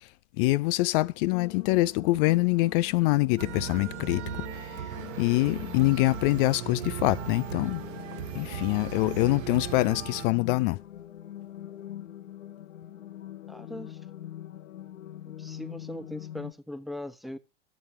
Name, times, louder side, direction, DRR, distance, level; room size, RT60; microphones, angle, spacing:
voice 1, 0.4-4.2 4.6-4.8 5.2-7.8 8.3-10.8, left 20 dB, 45° left, 0.5 m, -25 dB
sound 1, 1.3-16.5, left 11 dB, 75° left, 0.8 m, -43 dB
sound 2, 3.4-10.3, right 11 dB, 60° right, 1.0 m, -38 dB
sound 3, 4.9-9.9, right 7 dB, 80° right, 1.3 m, -47 dB
voice 2, 13.5-14.1 15.2-17.4, left 1 dB, ahead, 1.2 m, -40 dB
14.0 x 8.2 x 3.1 m
figure-of-eight pair, 85°, 38 cm